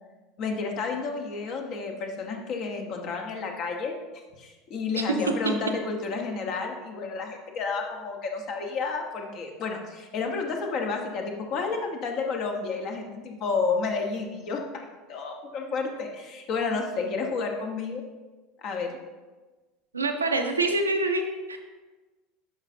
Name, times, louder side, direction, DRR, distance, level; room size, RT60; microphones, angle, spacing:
voice 1, 0.4-3.9 4.4-18.0 18.6-18.9, left 4 dB, 50° left, 3 dB, 1.1 m, -31 dB
voice 2, 19.9-21.6, right 2 dB, 85° right, 4 dB, 0.6 m, -26 dB
11.5 x 5.0 x 2.7 m, 1.3 s
figure-of-eight pair, 75°, 0 cm